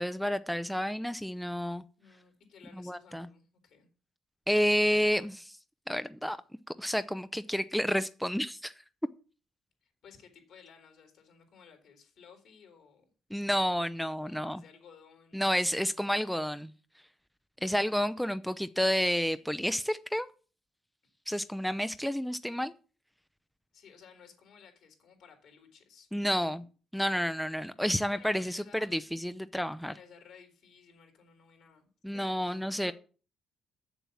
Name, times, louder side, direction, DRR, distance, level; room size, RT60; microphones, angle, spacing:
voice 1, 0.0-1.8 2.8-3.3 4.5-5.6 5.9-6.4 6.8-8.7 13.3-14.6 15.3-16.7 17.6-20.3 21.3-22.7 26.1-26.6 26.9-29.9 32.0-32.9, equal, ahead, 12 dB, 0.5 m, -30 dB
voice 2, 2.0-3.9 9.8-13.1 14.2-15.4 16.1-16.2 17.6-18.5 23.7-26.1 26.4-26.6 28.1-29.1 29.8-32.9, left 6 dB, 75° left, 4 dB, 3.4 m, -57 dB
7.2 x 7.2 x 7.1 m, 0.37 s
cardioid pair, 90°, 0 cm